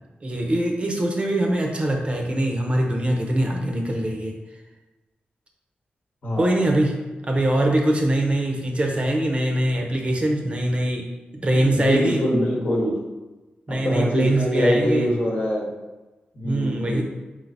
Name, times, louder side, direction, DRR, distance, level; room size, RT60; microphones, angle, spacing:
voice 1, 0.2-4.3 6.4-6.9 7.2-11.1 11.4-12.2 13.7-15.1 16.4-17.0, right 1 dB, 35° right, 1 dB, 0.5 m, -22 dB
voice 2, 6.2-6.7 11.5-13.0 13.7-15.7 16.3-17.0, equal, 60° left, -4 dB, 1.0 m, -24 dB
3.3 x 3.3 x 2.5 m, 1.1 s
cardioid pair, 75°, 4 cm